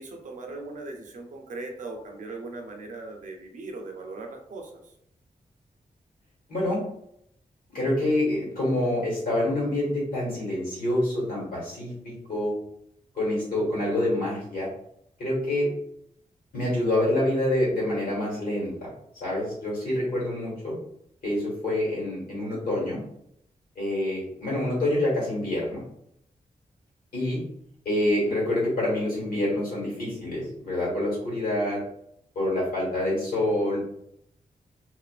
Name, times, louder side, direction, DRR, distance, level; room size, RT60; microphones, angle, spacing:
voice 1, 0.0-4.7, right 3 dB, 60° right, 2 dB, 0.5 m, -39 dB
voice 2, 6.5-6.8 7.7-12.5 13.1-14.7 15.2-15.7 16.5-18.9 19.2-20.7 21.2-23.0 23.7-25.8 27.1-27.4 27.8-31.8 32.3-33.8, left 1 dB, 85° left, -5 dB, 1.4 m, -26 dB
2.4 x 2.4 x 2.3 m, 0.74 s
wide cardioid pair, 115°, 15 cm